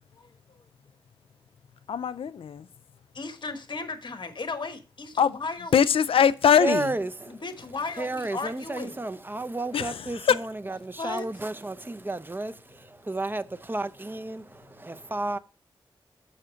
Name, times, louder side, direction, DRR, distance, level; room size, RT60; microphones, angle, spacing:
voice 1, 1.9-2.7 5.2-5.4 5.7-6.9 9.7-10.0 10.3-10.4, left 7 dB, 85° left, 0.4 m, -21 dB
voice 2, 3.1-5.9 7.3-9.0 11.0-11.3, left 3 dB, 55° left, 1.2 m, -36 dB
voice 3, 6.6-7.4 8.0-15.4, right 2 dB, 25° right, 0.6 m, -32 dB
6.8 x 5.7 x 4.9 m
cardioid pair, 65°, 9 cm